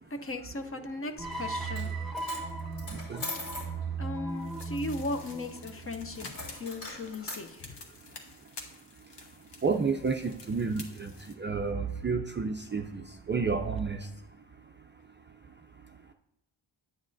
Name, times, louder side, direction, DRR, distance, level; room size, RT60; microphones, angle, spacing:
voice 1, 0.1-1.9 4.0-7.8, left 2 dB, 30° left, 8 dB, 0.5 m, -37 dB
sound 1, 1.2-6.4, right 3 dB, ahead, 0.9 m, -37 dB
Coin (dropping), 1.6-3.7 6.3-7.4, left 2 dB, 75° left, 3.2 m, -40 dB
voice 2, 2.9-3.2 9.6-11.1 11.4-14.1, right 4 dB, 25° right, 4 dB, 0.3 m, -30 dB
sound 2, 4.4-11.3, left 3 dB, 60° left, 1.3 m, -49 dB
9.5 x 8.3 x 2.6 m, 0.89 s
wide cardioid pair, 130°, 47 cm